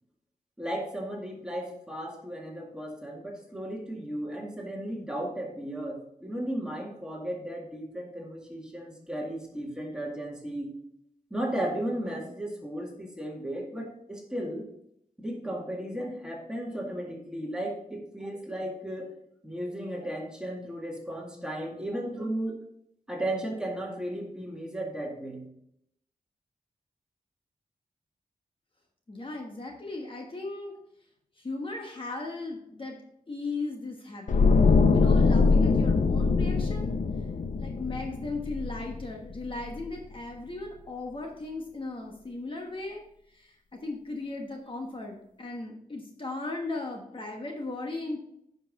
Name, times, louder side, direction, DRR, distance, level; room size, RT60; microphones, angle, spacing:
voice 1, 0.6-10.7 11.3-14.7 15.2-19.1 19.4-22.5 23.1-25.4, right 1 dB, 5° right, -1 dB, 2.0 m, -35 dB
voice 2, 29.1-30.8 31.4-33.0 33.3-34.4 34.9-36.9 37.6-48.2, left 2 dB, 40° left, 1 dB, 1.3 m, -37 dB
sound 1, 34.3-39.4 39.6-39.9, left 4 dB, 65° left, 0.7 m, -23 dB
10.0 x 5.4 x 4.1 m, 0.74 s
wide cardioid pair, 140°, 14 cm